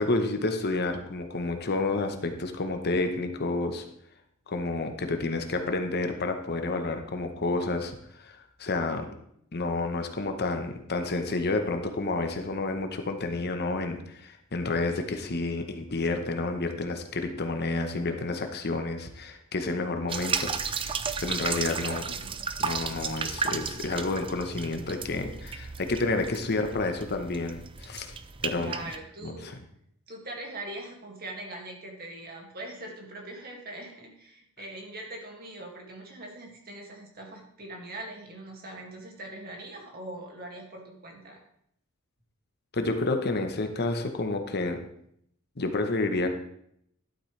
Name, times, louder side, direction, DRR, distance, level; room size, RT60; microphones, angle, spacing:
voice 1, 0.0-3.8 4.5-9.1 9.5-22.0 22.6-28.1 28.4-28.8 29.2-29.5 42.7-44.8 45.6-46.3, left 2 dB, 50° left, 6 dB, 1.0 m, -30 dB
sound 1, 20.1-29.0, right 5 dB, 25° right, 0.5 m, -34 dB
voice 2, 21.8-22.3 28.5-29.5 30.1-41.4, right 2 dB, 45° right, 0 dB, 2.2 m, -42 dB
11.5 x 8.4 x 3.3 m, 0.71 s
head